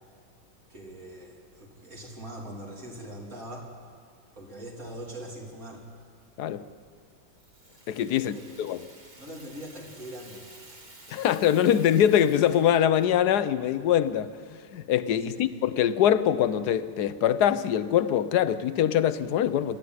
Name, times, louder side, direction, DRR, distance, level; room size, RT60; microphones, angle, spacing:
voice 1, 0.7-3.7 4.3-5.8 8.1-8.5 9.2-10.8 15.3-15.5, right 1 dB, 45° right, 3.8 m, -42 dB
Rattle (instrument), 7.3-13.3, right 2 dB, 25° right, 1.8 m, -52 dB
voice 2, 7.9-8.9 11.1-14.3 14.7-19.8, left 10 dB, 65° left, 1.2 m, -23 dB
25.5 x 13.0 x 9.5 m
omnidirectional pair, 2.0 m